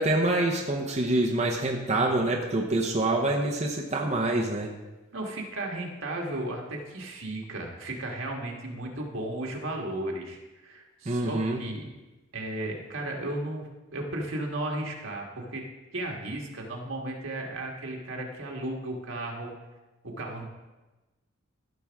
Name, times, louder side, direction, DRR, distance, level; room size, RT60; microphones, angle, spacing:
voice 1, 0.0-4.7 11.1-11.6, right 2 dB, 35° right, -1 dB, 0.8 m, -26 dB
voice 2, 5.1-11.9 12.3-15.7 15.9-19.5 20.0-20.4, right 1 dB, 80° right, 0 dB, 1.6 m, -35 dB
14.5 x 6.0 x 3.5 m, 1.1 s
head